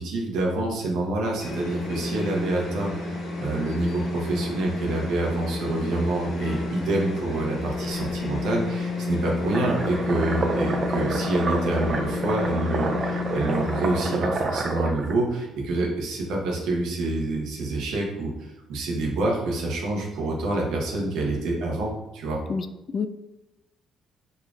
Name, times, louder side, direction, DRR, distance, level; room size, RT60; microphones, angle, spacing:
voice 1, 0.0-22.4, right 2 dB, 75° right, -1 dB, 1.0 m, -27 dB
sound 1, 1.4-14.1, left 3 dB, 75° left, 1.0 m, -31 dB
sound 2, 9.5-15.1, right 3 dB, 45° right, 0.6 m, -29 dB
voice 2, 22.5-23.1, left 5 dB, 45° left, 9 dB, 0.3 m, -29 dB
4.1 x 3.4 x 2.4 m, 0.97 s
supercardioid pair, 60°, 0 cm